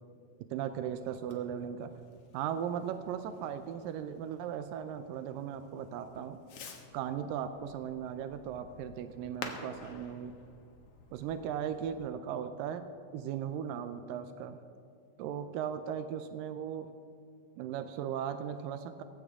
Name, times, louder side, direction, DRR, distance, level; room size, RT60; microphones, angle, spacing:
voice 1, 0.5-1.9 2.3-6.4 6.9-10.3 11.1-12.9 13.1-14.6 15.2-16.9 17.6-19.0, right 9 dB, 85° right, 10 dB, 2.2 m, -37 dB
Fireworks, 0.6-12.0, left 4 dB, 55° left, 1.8 m, -51 dB
17.5 x 15.5 x 3.6 m, 2.3 s
omnidirectional pair, 3.9 m